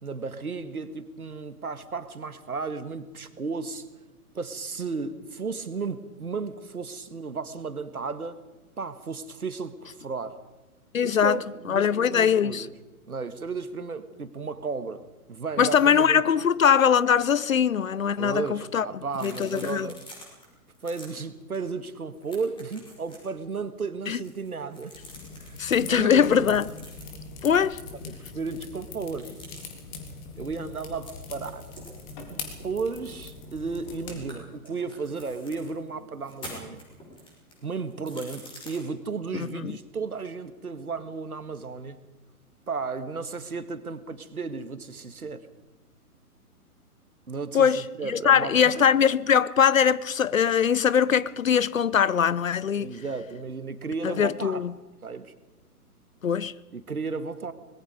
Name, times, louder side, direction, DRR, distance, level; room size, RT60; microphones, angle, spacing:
voice 1, 0.0-3.9 4.3-8.4 8.8-10.4 11.0-12.7 13.1-15.0 15.3-16.4 18.2-20.0 20.8-25.0 25.4-26.7 28.0-29.3 30.3-31.7 32.3-36.8 37.6-42.0 42.7-45.5 47.3-48.8 52.8-54.7 55.0-55.3 56.7-57.5, right 4 dB, 70° right, 1.8 m, -34 dB
voice 2, 10.9-11.4 11.7-12.6 15.6-18.9 19.2-19.9 24.1-24.2 25.6-26.6 27.4-27.8 39.3-39.8 47.5-52.9 54.0-54.7 56.2-56.5, left 7 dB, 60° left, 0.8 m, -22 dB
sound 1, 19.1-20.4 20.7-21.1 21.5-21.7 22.0-23.3 24.0-25.9 26.5-27.3 29.1-29.6 31.0-33.8 34.1-35.7 36.2-38.8, left 1 dB, 10° left, 5.9 m, -47 dB
sound 2, 24.9-34.3, left 4 dB, 30° left, 3.5 m, -42 dB
Run, 31.4-32.7 33.0-33.6 33.9-35.2 35.5-35.6 35.9-36.1, right 5 dB, 20° right, 7.2 m, -50 dB
25.0 x 20.5 x 5.2 m
figure-of-eight pair, 125°, 45 cm